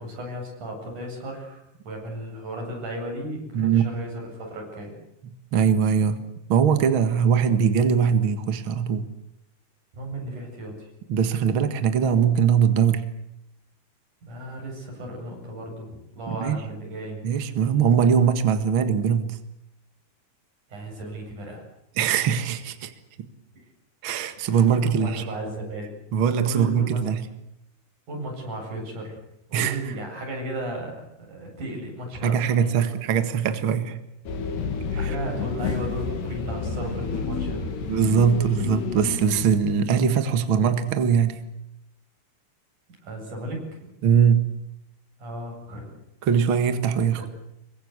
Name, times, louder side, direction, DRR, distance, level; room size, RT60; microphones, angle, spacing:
voice 1, 0.0-5.0 9.9-10.9 14.2-17.2 20.7-21.6 24.5-25.9 26.4-27.0 28.1-29.2 29.5-32.9 35.0-37.6 43.0-43.7 45.2-45.9 47.2-47.3, right 1 dB, 45° right, 1 dB, 9.4 m, -35 dB
voice 2, 3.5-3.8 5.5-6.2 6.5-9.1 11.1-13.1 16.3-16.6 17.2-19.4 22.0-22.9 23.2-23.3 24.0-25.2 26.1-27.2 29.5-29.8 32.2-34.0 35.0-35.1 37.9-41.4 44.0-44.5 46.2-47.2, right 7 dB, 65° right, 9 dB, 1.2 m, -21 dB
sound 1, 34.3-39.6, left 5 dB, 70° left, 4.6 m, -30 dB
26.5 x 23.0 x 8.2 m, 0.80 s
omnidirectional pair, 5.0 m